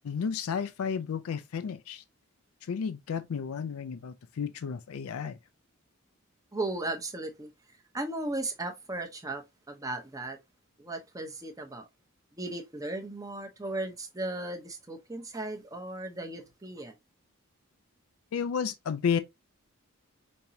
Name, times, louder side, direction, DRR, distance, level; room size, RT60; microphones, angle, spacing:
voice 1, 0.0-2.0 2.7-5.4 18.3-19.2, left 6 dB, 80° left, 0.4 m, -32 dB
voice 2, 6.5-10.4 10.8-11.9 12.3-17.0, right 2 dB, 15° right, 0.8 m, -36 dB
5.3 x 2.9 x 2.7 m
head